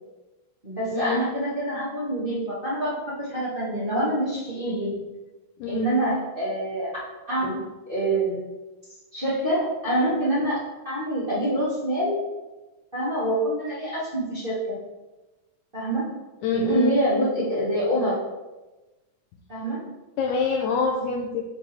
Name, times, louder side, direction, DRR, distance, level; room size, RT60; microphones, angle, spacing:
voice 1, 0.6-5.0 5.6-6.9 7.3-8.4 9.1-10.6 10.8-12.2 12.9-14.8 15.7-16.1 16.5-18.2 19.5-19.8, right 1 dB, 20° right, -10 dB, 1.6 m, -26 dB
voice 2, 16.4-16.9 20.2-21.4, left 5 dB, 80° left, 1 dB, 1.7 m, -25 dB
8.2 x 4.3 x 3.4 m, 1.1 s
omnidirectional pair, 3.7 m